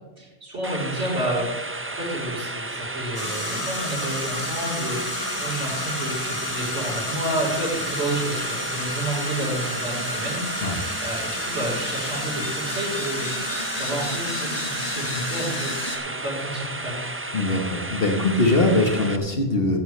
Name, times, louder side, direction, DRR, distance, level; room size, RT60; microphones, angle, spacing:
voice 1, 0.2-1.6 1.9-13.3 13.7-15.7 16.2-17.0, right 1 dB, 80° right, -9 dB, 4.5 m, -30 dB
sound 1, 0.6-19.2, right 2 dB, 15° right, 0.5 m, -33 dB
sound 2, 3.1-16.0, left 1 dB, 30° left, 2.2 m, -31 dB
voice 2, 17.3-19.8, left 2 dB, 55° left, 3 dB, 1.5 m, -21 dB
16.0 x 11.0 x 3.3 m, 1.1 s
omnidirectional pair, 1.2 m